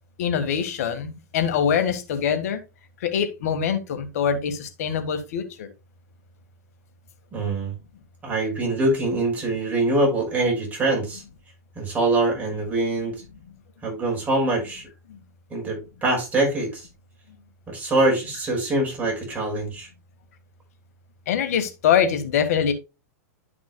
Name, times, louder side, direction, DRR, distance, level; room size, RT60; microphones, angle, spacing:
voice 1, 0.2-2.6 3.0-5.7 21.3-22.7, left 8 dB, 70° left, 1.5 m, -24 dB
voice 2, 7.3-7.7 8.2-11.2 11.8-13.2 13.8-14.8 15.5-16.9 17.7-19.9, right 2 dB, 20° right, 5.5 m, -24 dB
12.0 x 6.0 x 2.2 m
hypercardioid pair, 125°, 9 cm